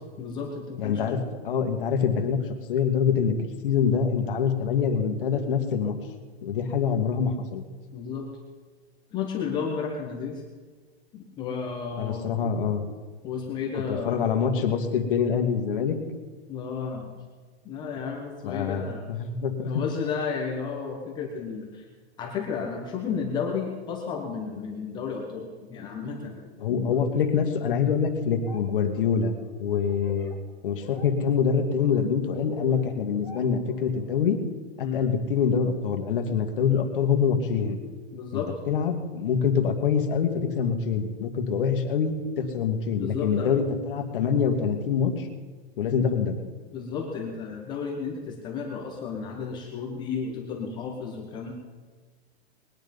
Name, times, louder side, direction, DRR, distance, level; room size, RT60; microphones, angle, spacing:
voice 1, 0.2-1.2 7.9-8.3 9.1-10.4 11.1-12.4 13.2-14.2 16.5-17.1 17.6-19.1 19.7-21.8 22.2-27.0 34.8-35.1 38.1-38.5 43.0-43.5 46.0-46.1 46.7-51.5, left 6 dB, 15° left, 0 dB, 1.2 m, -33 dB
voice 2, 0.8-1.2 1.4-2.4 2.7-3.4 3.6-6.0 6.4-7.6 12.0-12.8 13.9-16.0 18.4-19.8 26.6-29.3 29.6-30.3 30.6-34.4 34.8-37.8 38.3-45.3 45.8-46.4, left 6 dB, 55° left, 4 dB, 2.0 m, -25 dB
Laughter, 28.2-28.6 28.9-30.3 30.7-31.0 31.4-34.2, equal, 5° right, 0.4 m, -43 dB
20.5 x 10.0 x 5.4 m, 1.5 s
hypercardioid pair, 170°, 32 cm